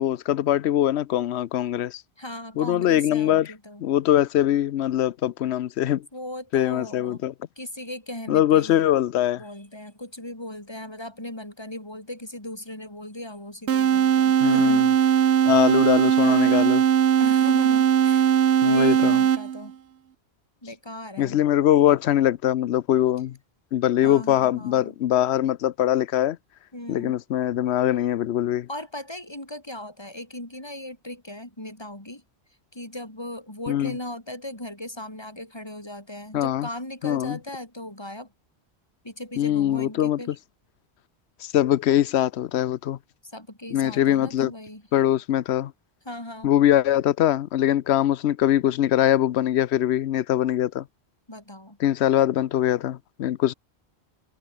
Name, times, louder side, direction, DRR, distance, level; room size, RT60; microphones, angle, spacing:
voice 1, 0.0-2.0 2.6-3.5 3.8-6.1 6.5-7.3 8.3-9.4 14.4-14.9 15.4-16.8 18.6-19.2 21.2-23.4 23.7-26.4 26.9-28.7 33.7-33.9 36.3-36.7 37.0-37.4 39.4-40.2 41.4-43.0 43.7-44.5 44.9-45.7 46.4-50.8 51.8-53.5, left 12 dB, 80° left, 0.9 m, -22 dB
voice 2, 2.2-3.8 6.1-7.2 7.6-8.9 9.4-15.4 16.0-16.7 17.2-18.3 18.6-19.8 20.6-21.4 24.0-24.9 26.7-27.1 28.7-32.2 32.7-38.3 39.0-40.4 43.2-44.8 46.0-46.5 51.3-51.8, left 1 dB, 25° left, 5.0 m, -38 dB
sound 1, 13.7-19.7, right 9 dB, 80° right, 1.2 m, -19 dB
omnidirectional pair, 1.1 m